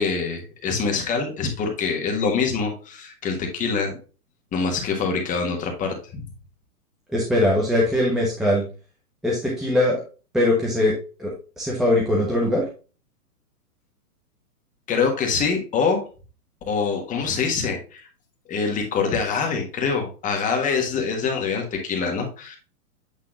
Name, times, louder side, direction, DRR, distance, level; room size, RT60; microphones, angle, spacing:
voice 1, 0.0-3.9 4.5-6.2 14.9-16.0 16.7-18.1 18.5-22.6, left 5 dB, 15° left, 3 dB, 1.5 m, -25 dB
voice 2, 7.1-8.6 9.2-10.0 10.3-11.3 11.6-12.6, left 1 dB, ahead, -4 dB, 0.5 m, -21 dB
8.5 x 3.6 x 3.7 m, 0.34 s
hypercardioid pair, 145°, 46 cm